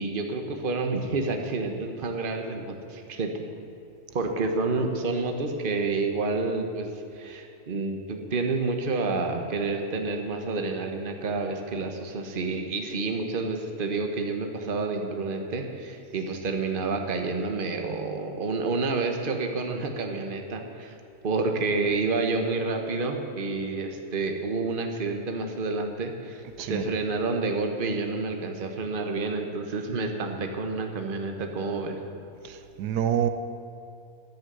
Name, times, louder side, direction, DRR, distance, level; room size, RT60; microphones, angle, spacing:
voice 1, 0.0-3.4 4.1-20.9 21.2-32.0, right 3 dB, 35° right, 4 dB, 1.2 m, -29 dB
voice 2, 32.4-33.3, right 9 dB, 85° right, 9 dB, 1.3 m, -27 dB
10.5 x 8.7 x 9.2 m, 2.7 s
omnidirectional pair, 1.7 m